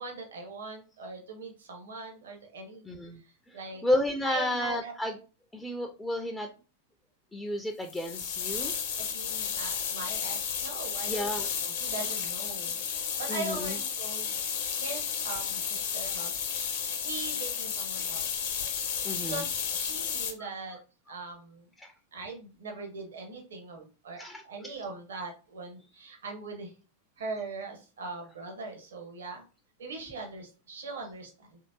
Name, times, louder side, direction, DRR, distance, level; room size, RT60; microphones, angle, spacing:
voice 1, 0.0-2.8 3.1-3.8 4.2-4.9 9.0-14.4 14.7-16.3 16.7-18.3 18.9-20.8 21.1-21.7 22.1-26.7 27.2-29.4 29.8-31.6, right 3 dB, 65° right, 2 dB, 0.7 m, -41 dB
voice 2, 2.9-3.2 3.8-5.1 5.5-6.5 7.3-8.7 11.1-11.5 13.3-13.8 19.0-19.4 21.8-21.9 24.2-24.4, left 1 dB, 5° left, 3 dB, 0.3 m, -31 dB
sound 1, 7.9-20.3, left 7 dB, 55° left, 0.6 m, -33 dB
3.0 x 2.7 x 2.7 m, 0.35 s
figure-of-eight pair, 90°, 0 cm